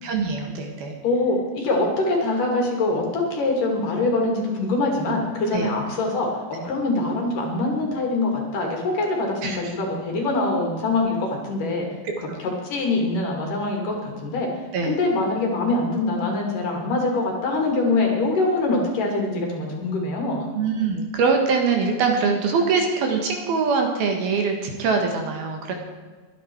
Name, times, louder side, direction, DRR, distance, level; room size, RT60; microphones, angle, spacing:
voice 1, 0.0-1.0 5.5-5.7 9.4-9.6 14.7-15.0 20.5-25.7, right 5 dB, 65° right, 3 dB, 3.1 m, -23 dB
voice 2, 1.0-11.9 12.2-14.5 14.8-20.4, left 2 dB, 50° left, 1 dB, 3.6 m, -24 dB
23.0 x 9.5 x 4.6 m, 1.4 s
omnidirectional pair, 5.1 m